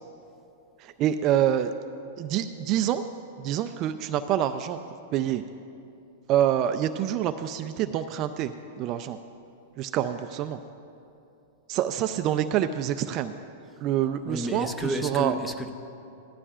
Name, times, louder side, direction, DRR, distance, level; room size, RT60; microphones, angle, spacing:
voice 1, 0.8-1.7 2.2-3.1 3.4-4.8 5.1-5.4 6.3-9.2 9.8-10.6 11.7-13.3 13.8-15.4, right 11 dB, 35° right, 8 dB, 0.4 m, -26 dB
voice 2, 14.3-15.7, equal, 5° left, 7 dB, 0.7 m, -31 dB
17.5 x 12.5 x 2.5 m, 2.7 s
supercardioid pair, 150°, 0 cm